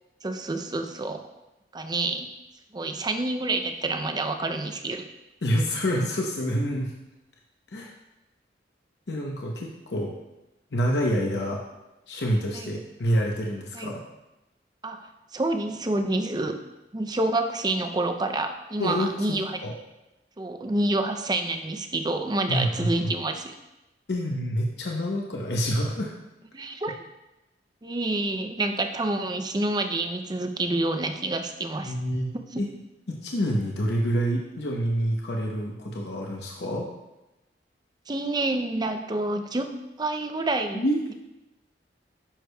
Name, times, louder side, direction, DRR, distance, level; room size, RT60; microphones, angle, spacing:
voice 1, 0.2-1.3 1.7-2.3 2.7-5.1 12.5-12.8 13.7-13.9 14.8-16.6 16.9-19.6 20.4-23.5 26.5-27.0 27.8-31.9 38.1-40.8, right 2 dB, 25° right, 7 dB, 0.5 m, -28 dB
voice 2, 5.4-6.9 7.7-7.9 9.1-10.1 10.7-11.6 12.1-14.0 18.8-19.7 22.5-23.1 24.1-26.1 31.8-32.7 33.1-36.9 40.7-41.0, equal, 70° left, -1 dB, 0.8 m, -27 dB
10.0 x 6.2 x 2.3 m, 0.96 s
head